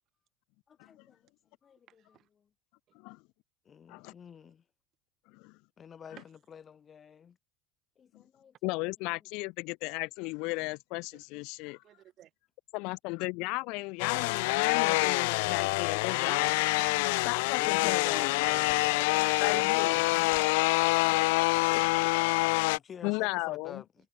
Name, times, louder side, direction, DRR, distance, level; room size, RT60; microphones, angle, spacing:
voice 1, 0.7-1.2 1.6-2.2 3.7-4.6 5.8-7.4 8.0-8.5 17.6-19.0 19.4-20.0 22.7-23.9, left 7 dB, 25° left, 2.1 m, -48 dB
voice 2, 2.0-2.3 4.4-4.5 11.8-12.3 16.1-16.7 18.4-20.3 20.6-21.4, right 12 dB, 40° right, 5.7 m, -50 dB
voice 3, 8.6-11.8 12.7-16.6 17.2-18.3 19.4-20.2 21.7-21.9 23.0-23.8, left 27 dB, 60° left, 1.2 m, -35 dB
sound 1, 14.0-22.8, left 25 dB, 75° left, 0.7 m, -26 dB
cardioid pair, 155°, 0 cm